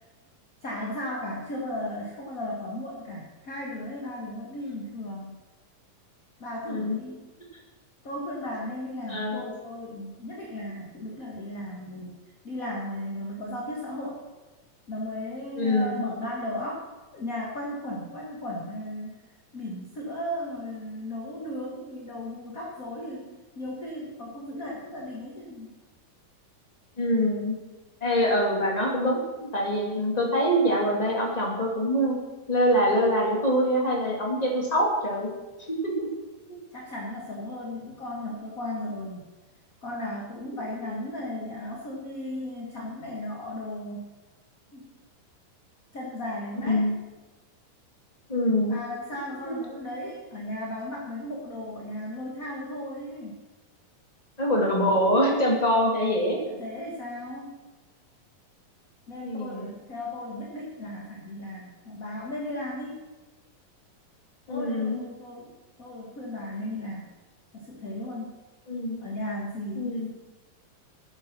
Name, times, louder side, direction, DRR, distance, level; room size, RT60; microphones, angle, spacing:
voice 1, 0.6-5.4 6.4-7.2 8.0-12.1 12.4-14.2 14.9-16.9 17.1-19.1 19.5-23.3 23.5-25.7 36.7-39.2 39.8-44.1 44.7-44.9 45.9-46.8 48.7-53.4 56.5-57.6 59.1-63.0 64.5-65.5 65.8-67.0 67.5-68.3 69.0-70.1, left 1 dB, 35° left, -3 dB, 1.5 m, -35 dB
voice 2, 6.7-7.0 9.1-9.4 15.6-16.0 27.0-27.6 28.0-32.2 32.5-35.3 35.8-36.1 36.5-36.6 46.7-46.9 48.3-48.7 49.5-49.6 54.4-56.4 59.2-59.7 64.5-65.0 68.7-69.0 69.7-70.1, equal, 10° left, -1 dB, 2.3 m, -24 dB
12.5 x 10.0 x 6.0 m, 1.2 s
omnidirectional pair, 4.0 m